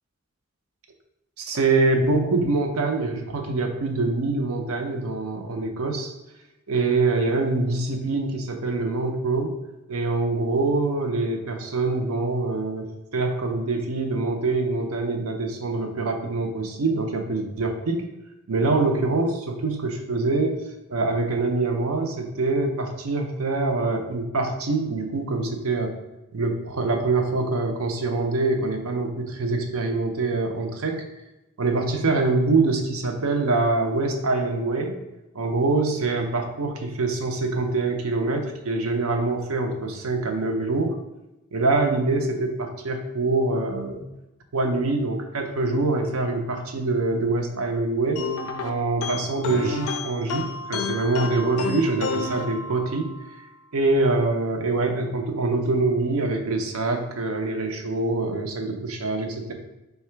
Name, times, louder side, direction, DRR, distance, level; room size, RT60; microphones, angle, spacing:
voice 1, 1.4-6.1 6.7-9.6 9.9-18.0 18.5-20.6 20.9-26.0 26.3-31.1 31.6-35.0 35.3-41.0 41.5-44.1 44.5-48.3 48.6-53.1 53.7-59.5, right 3 dB, 85° right, 5 dB, 0.6 m, -24 dB
sound 1, 48.2-53.2, left 4 dB, 85° left, 0.4 m, -31 dB
3.7 x 2.3 x 4.4 m, 1.0 s
head